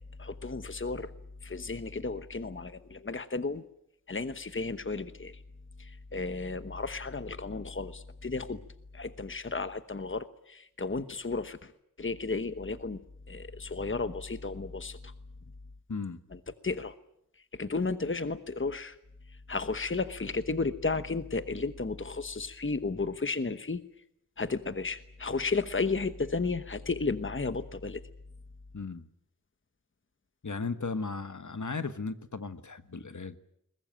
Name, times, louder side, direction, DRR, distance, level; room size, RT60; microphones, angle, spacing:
voice 1, 0.2-1.1 1.4-3.6 4.1-5.3 6.1-8.6 8.9-11.6 12.0-13.0 13.3-15.0 16.6-16.9 17.6-18.9 19.5-23.8 24.4-28.0, left 3 dB, 40° left, 11 dB, 1.1 m, -33 dB
voice 2, 15.9-16.2 28.7-29.1 30.4-33.4, left 4 dB, 70° left, 10 dB, 1.4 m, -36 dB
22.0 x 20.5 x 9.0 m, 0.76 s
wide cardioid pair, 55°, 31 cm